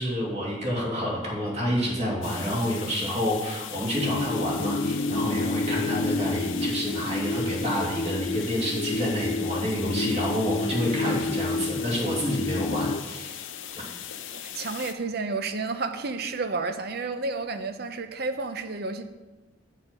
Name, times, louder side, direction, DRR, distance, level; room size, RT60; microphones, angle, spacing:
voice 1, 0.0-13.4, equal, 35° right, -4 dB, 2.7 m, -28 dB
sound 1, 2.2-14.9, left 9 dB, 85° left, 0.7 m, -39 dB
sound 2, 3.9-13.0, left 2 dB, 50° left, 0.4 m, -29 dB
voice 2, 14.3-19.0, right 3 dB, 55° right, 8 dB, 0.7 m, -31 dB
9.0 x 6.6 x 5.4 m, 1.2 s
head